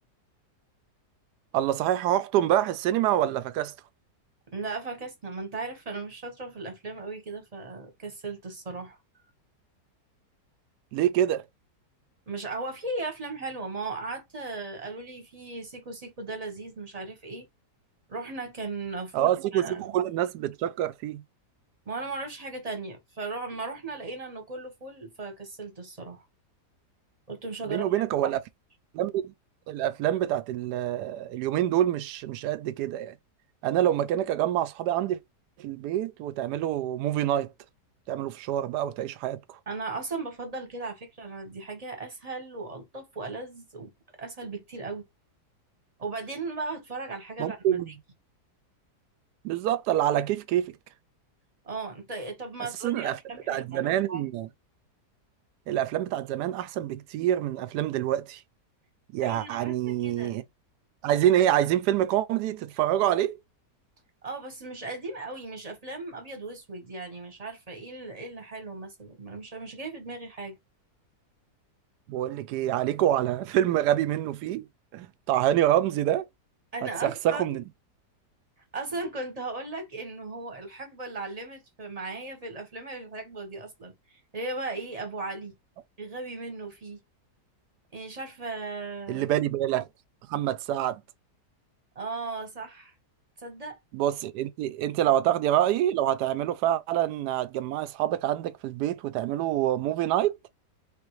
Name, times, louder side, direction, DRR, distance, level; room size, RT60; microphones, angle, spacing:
voice 1, 1.5-3.7 10.9-11.5 19.1-21.2 27.7-28.4 28.9-29.3 29.7-33.1 33.6-35.2 35.6-37.5 38.1-39.6 47.4-47.9 49.4-50.7 52.8-53.2 53.5-54.5 55.7-58.4 59.1-60.4 61.0-63.4 72.1-74.7 74.9-76.3 77.0-77.6 89.1-89.9 90.3-91.0 93.9-100.3, right 12 dB, 80° right, 1.1 m, -26 dB
voice 2, 4.5-9.0 12.3-17.5 18.1-20.0 21.9-26.3 27.3-27.9 39.7-43.9 44.2-45.1 46.0-48.0 51.6-54.2 59.2-60.3 64.2-70.6 76.7-77.6 78.7-85.5 86.0-87.0 87.9-89.2 91.9-92.9 93.4-93.8 95.0-95.1, right 3 dB, 25° right, 1.0 m, -37 dB
3.8 x 3.4 x 3.1 m
omnidirectional pair, 1.8 m